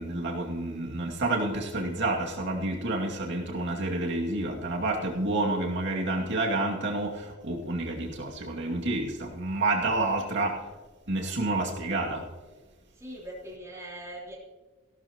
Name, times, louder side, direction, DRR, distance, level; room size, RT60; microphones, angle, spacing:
voice 1, 0.0-10.6 11.1-12.3, right 2 dB, 60° right, 0 dB, 2.4 m, -29 dB
voice 2, 13.0-14.4, right 1 dB, 15° right, -4 dB, 3.2 m, -41 dB
16.5 x 12.5 x 3.0 m, 1.3 s
head